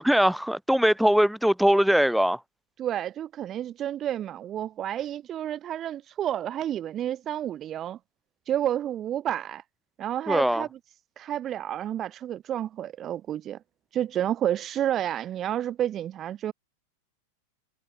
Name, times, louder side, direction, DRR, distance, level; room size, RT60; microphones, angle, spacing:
voice 1, 0.0-2.4 10.3-10.7, equal, ahead, 5.3 m, -21 dB
voice 2, 2.8-8.0 8.5-9.6 10.0-10.7 11.2-13.6 13.9-16.5, right 11 dB, 35° right, 2.4 m, -30 dB
figure-of-eight pair, 95°, 0 cm